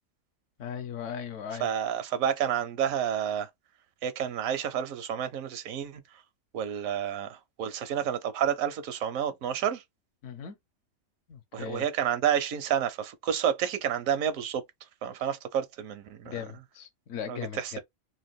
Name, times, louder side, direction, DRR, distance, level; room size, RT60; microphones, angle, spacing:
voice 1, 0.6-1.7 10.2-10.5 11.3-11.8 16.2-17.8, left 8 dB, 70° left, 1.0 m, -38 dB
voice 2, 1.6-3.5 4.0-6.0 6.5-9.8 11.5-14.6 15.0-16.3 17.3-17.8, right 9 dB, 85° right, 1.1 m, -30 dB
2.8 x 2.2 x 3.4 m
omnidirectional pair, 1.4 m